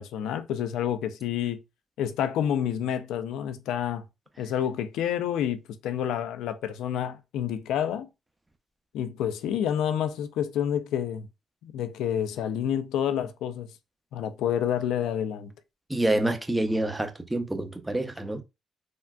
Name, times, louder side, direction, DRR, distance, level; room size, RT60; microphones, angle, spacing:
voice 1, 0.0-1.6 2.0-4.0 4.4-8.1 8.9-11.3 11.6-13.7 14.1-15.5, left 9 dB, 85° left, 0.4 m, -29 dB
voice 2, 15.9-18.4, right 1 dB, 10° right, 0.5 m, -27 dB
3.7 x 2.1 x 2.3 m
cardioid pair, 90°, 0 cm